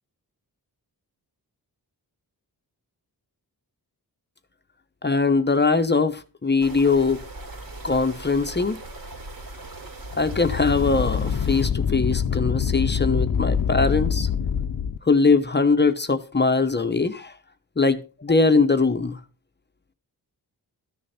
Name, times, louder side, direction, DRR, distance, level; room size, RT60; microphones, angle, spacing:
voice 1, 5.0-7.2 7.8-8.8 10.2-14.3 15.0-17.3 17.8-19.2, left 4 dB, 25° left, 1.1 m, -21 dB
sound 1, 6.6-11.7, right 2 dB, 60° right, 4.0 m, -39 dB
sound 2, 10.1-15.0, left 7 dB, 55° left, 0.9 m, -25 dB
13.5 x 10.0 x 4.4 m
wide cardioid pair, 115°, 39 cm